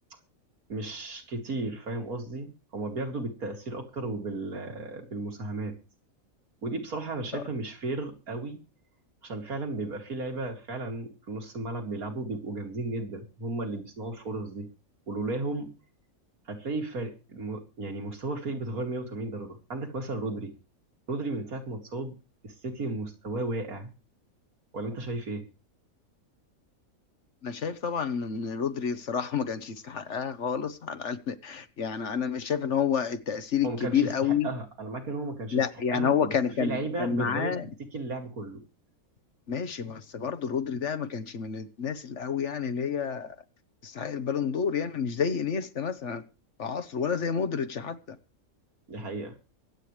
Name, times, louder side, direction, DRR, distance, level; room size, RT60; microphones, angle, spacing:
voice 1, 0.7-5.7 6.6-8.6 9.2-14.7 15.1-15.7 16.5-20.5 21.1-22.1 22.4-23.9 24.7-25.4 33.6-34.1 34.4-35.6 35.9-36.1 36.6-37.6 37.9-38.6 48.9-49.3, right 2 dB, 85° right, 3.1 m, -34 dB
voice 2, 27.4-34.5 35.5-37.7 39.5-43.3 43.8-46.2 46.6-48.2, left 7 dB, 55° left, 1.3 m, -29 dB
24.0 x 8.9 x 3.3 m
omnidirectional pair, 1.5 m